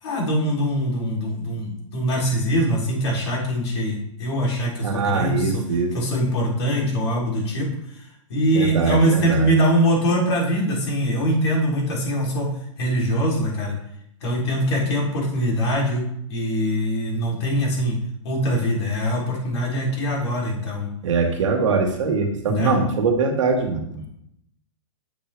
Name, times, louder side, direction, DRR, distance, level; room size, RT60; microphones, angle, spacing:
voice 1, 0.0-5.5 5.9-7.7 8.3-12.5 12.8-13.7 14.2-16.0 16.3-17.9 18.2-20.9 22.4-22.7, equal, 55° left, -3 dB, 3.4 m, -22 dB
voice 2, 4.8-5.9 8.5-9.5 21.0-24.1, right 4 dB, 70° right, 2 dB, 1.9 m, -22 dB
8.8 x 6.4 x 3.4 m, 0.75 s
hypercardioid pair, 175°, 17 cm